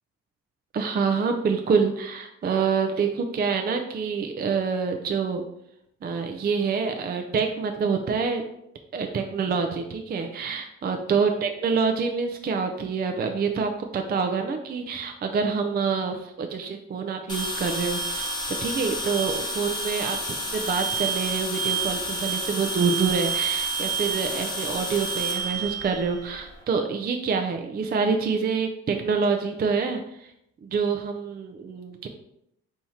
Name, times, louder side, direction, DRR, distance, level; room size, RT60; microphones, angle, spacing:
voice 1, 0.7-5.4 6.0-8.4 8.9-30.3 30.6-32.1, right 5 dB, 35° right, 5 dB, 0.4 m, -26 dB
sound 1, 17.3-26.5, right 3 dB, 15° left, 1.0 m, -29 dB
3.5 x 2.8 x 4.2 m, 0.77 s
cardioid pair, 90°, 30 cm